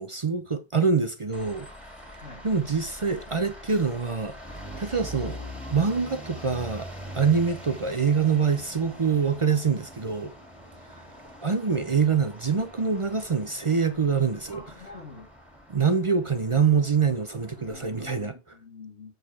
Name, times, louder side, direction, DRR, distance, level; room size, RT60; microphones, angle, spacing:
voice 1, 0.0-1.7 2.4-5.4 5.7-10.3 11.0-11.1 11.4-14.6 15.7-18.3, right 5 dB, 40° right, 0.5 m, -25 dB
sound 1, 1.3-18.3, equal, ahead, 2.3 m, -43 dB
voice 2, 14.5-15.3 17.6-19.1, left 3 dB, 70° left, 2.0 m, -45 dB
8.0 x 6.4 x 3.4 m
omnidirectional pair, 1.2 m